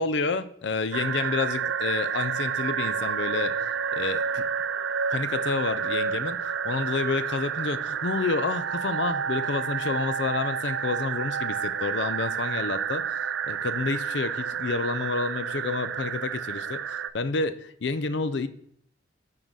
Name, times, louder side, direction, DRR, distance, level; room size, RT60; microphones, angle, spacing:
voice 1, 0.0-4.4 5.1-18.5, left 4 dB, 65° left, 13 dB, 0.5 m, -29 dB
sound 1, 0.9-17.1, right 7 dB, 75° right, 0.4 m, -30 dB
9.0 x 3.9 x 6.2 m, 0.66 s
head